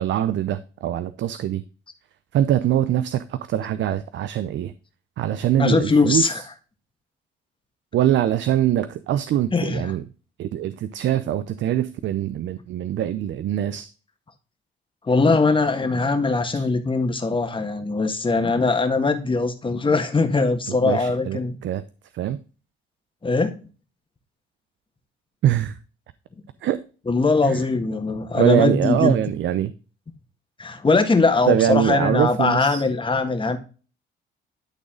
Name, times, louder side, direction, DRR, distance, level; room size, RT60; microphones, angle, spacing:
voice 1, 0.0-1.6 2.3-4.7 5.2-6.4 7.9-10.0 10.4-13.9 16.5-16.7 20.7-21.8 22.1-22.4 25.4-25.8 26.6-26.8 27.4-27.6 28.4-29.7 31.5-32.8, right 11 dB, 70° right, 0.6 m, -23 dB
voice 2, 5.6-6.4 9.5-9.9 15.1-21.6 23.2-23.5 27.1-29.1 30.6-33.6, left 3 dB, 25° left, 1.6 m, -21 dB
12.0 x 4.0 x 3.7 m
cardioid pair, 90°, 20 cm